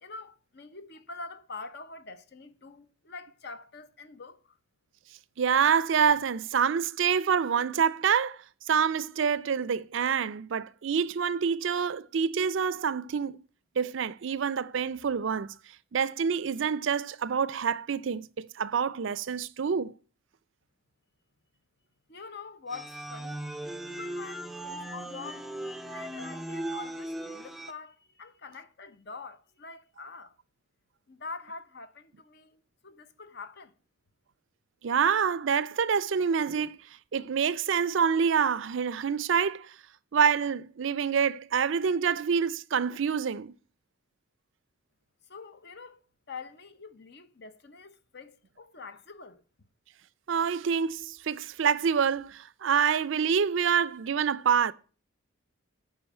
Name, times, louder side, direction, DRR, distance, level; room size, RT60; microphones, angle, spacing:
voice 1, 0.0-4.6 22.1-23.4 23.9-25.5 25.8-30.4 31.1-33.7 45.3-46.0 46.3-49.4, left 4 dB, 55° left, 0.9 m, -45 dB
voice 2, 5.4-8.4 8.7-13.4 13.8-15.5 15.9-19.9 34.8-36.8 37.1-39.7 40.1-43.5 50.3-54.7, right 7 dB, 65° right, 0.4 m, -27 dB
sound 1, 22.7-27.7, right 1 dB, ahead, 0.5 m, -38 dB
8.7 x 5.1 x 7.4 m
head